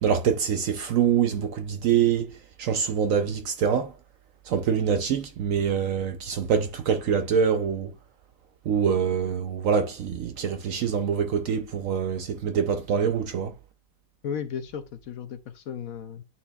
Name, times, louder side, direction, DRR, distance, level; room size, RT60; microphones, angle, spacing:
voice 1, 0.0-2.3 2.6-3.9 4.5-7.9 8.7-13.5, right 7 dB, 65° right, 0.8 m, -25 dB
voice 2, 14.2-16.2, left 7 dB, 65° left, 1.0 m, -35 dB
9.6 x 4.2 x 2.3 m
omnidirectional pair, 1.8 m